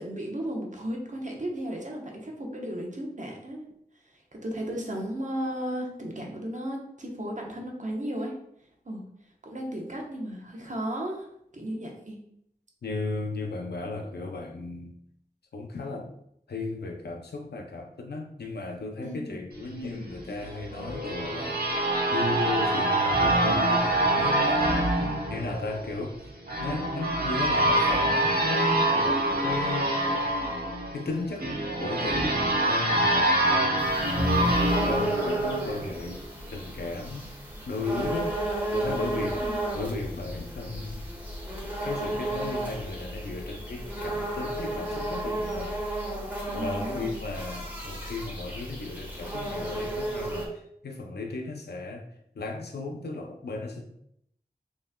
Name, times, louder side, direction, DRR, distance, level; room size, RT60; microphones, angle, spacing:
voice 1, 0.0-3.6 4.4-8.3 8.9-9.0 9.4-11.3 11.5-12.2 19.0-19.4 39.3-39.6 46.5-47.2, equal, 50° right, 0 dB, 1.0 m, -34 dB
voice 2, 12.8-15.0 15.5-16.1 16.5-26.2 26.6-29.9 30.9-31.5 31.8-36.2 36.5-37.3 37.7-41.0 41.8-45.8 46.5-52.1 52.4-53.9, left 3 dB, 90° left, 2 dB, 0.5 m, -35 dB
sound 1, 20.4-36.1, right 1 dB, 70° right, 0.9 m, -25 dB
sound 2, 33.8-50.5, right 1 dB, 10° right, 1.2 m, -33 dB
5.6 x 3.2 x 2.2 m, 0.72 s
wide cardioid pair, 60°, 16 cm